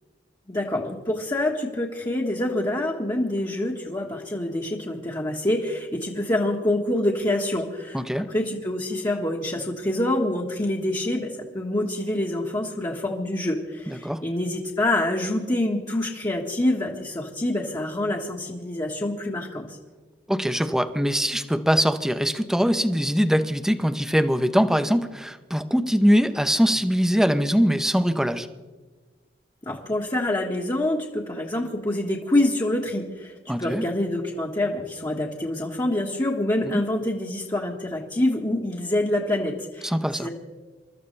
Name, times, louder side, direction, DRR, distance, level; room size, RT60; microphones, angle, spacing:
voice 1, 0.5-8.0 8.3-19.8 29.6-40.3, left 1 dB, 25° left, -2 dB, 1.6 m, -26 dB
voice 2, 7.9-8.3 13.9-14.2 20.3-28.5 33.5-33.8 36.6-36.7 39.8-40.3, equal, 5° right, 10 dB, 0.8 m, -22 dB
28.0 x 13.5 x 3.3 m, 1.3 s
head